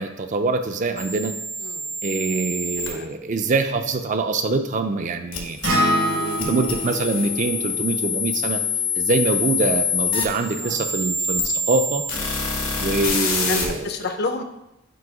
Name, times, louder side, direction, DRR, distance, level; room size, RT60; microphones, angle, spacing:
voice 1, 0.0-1.3 2.0-5.6 6.4-8.6 9.0-12.0 12.8-13.9, right 3 dB, 40° right, 7 dB, 0.4 m, -24 dB
sound 1, 1.0-2.9 5.3-13.7, left 4 dB, 85° left, 1.3 m, -26 dB
voice 2, 1.6-1.9 2.8-3.1 6.0-6.4 10.6-10.8 13.5-14.4, left 3 dB, 55° left, 6 dB, 0.6 m, -30 dB
Acoustic guitar, 5.6-9.9, equal, 75° right, 1.4 m, -27 dB
7.8 x 2.7 x 4.8 m, 0.88 s
head